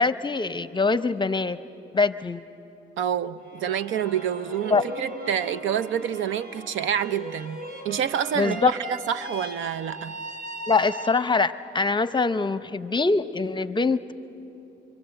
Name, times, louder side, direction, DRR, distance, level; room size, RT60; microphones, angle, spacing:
voice 1, 0.0-1.6 1.9-2.4 4.7-4.8 8.4-8.7 10.7-14.1, left 4 dB, 25° left, 0.7 m, -23 dB
voice 2, 3.0-10.1, right 9 dB, 80° right, 0.7 m, -28 dB
sound 1, 3.4-11.6, right 1 dB, 45° right, 4.2 m, -39 dB
25.5 x 24.5 x 7.8 m
cardioid pair, 90°, 20 cm